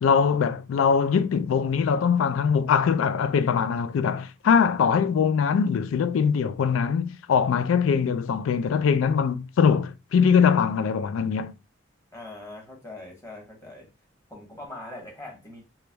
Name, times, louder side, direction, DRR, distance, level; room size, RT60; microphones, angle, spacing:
voice 1, 0.0-11.5, left 6 dB, 80° left, 0.3 m, -22 dB
voice 2, 12.1-13.9 14.3-15.6, left 2 dB, 15° left, 1.2 m, -41 dB
3.2 x 3.0 x 2.2 m
head